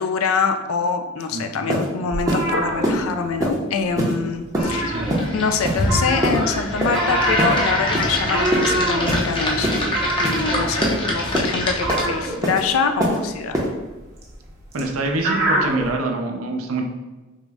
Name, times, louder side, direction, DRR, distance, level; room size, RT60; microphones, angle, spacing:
voice 1, 0.0-5.0 5.3-9.9 10.2-13.6, left 5 dB, 80° left, 7 dB, 0.4 m, -24 dB
sound 1, 1.2-1.3 1.7-1.9 2.3-2.4 2.8-3.0 3.4-3.6 4.0-4.1 4.5-4.7 5.1-5.3 5.6-5.8 6.2-6.4 6.8-7.0 7.4-7.5 7.9-8.1 8.5-8.7 9.1-9.3 9.6-9.8 10.2-10.4 10.8-11.0 11.3-11.5 11.9-12.1 12.4-12.6 13.0-13.2 13.5-13.7, equal, 15° right, 0.6 m, -22 dB
voice 2, 1.3-1.8 4.9-5.1 14.7-16.8, right 2 dB, 90° right, 3 dB, 0.5 m, -26 dB
sound 2, 2.1-3.6 3.9-4.1 4.4-5.5 5.8-15.9, right 2 dB, 50° right, 0.7 m, -26 dB
sound 3, 4.6-12.3, left 1 dB, 25° left, 0.5 m, -25 dB
3.7 x 2.0 x 3.4 m, 1.2 s
head